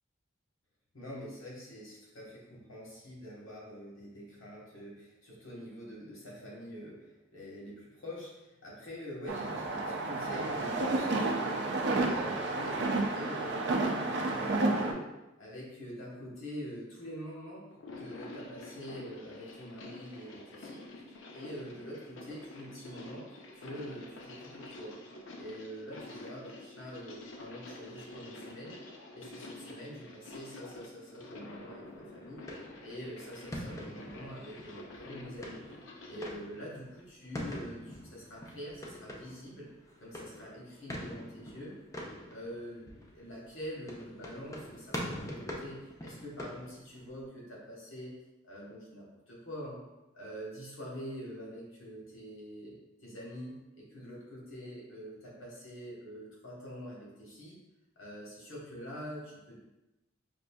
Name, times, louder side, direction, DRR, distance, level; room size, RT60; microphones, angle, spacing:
voice 1, 0.9-12.7 13.1-15.1 15.4-17.7 18.0-20.9 21.3-23.3 23.5-25.0 25.3-28.8 29.1-32.4 32.8-35.8 36.1-39.7 40.0-41.8 42.3-48.1 48.4-49.8 50.1-52.7 53.0-57.6 58.0-59.6, equal, 90° left, -4 dB, 1.2 m, -45 dB
sound 1, 9.3-14.9, right 2 dB, 55° right, 0.4 m, -31 dB
sound 2, 17.7-36.3, left 2 dB, 65° left, 0.5 m, -48 dB
sound 3, 31.5-47.3, left 1 dB, 15° left, 0.4 m, -44 dB
5.2 x 2.6 x 2.2 m, 0.99 s
head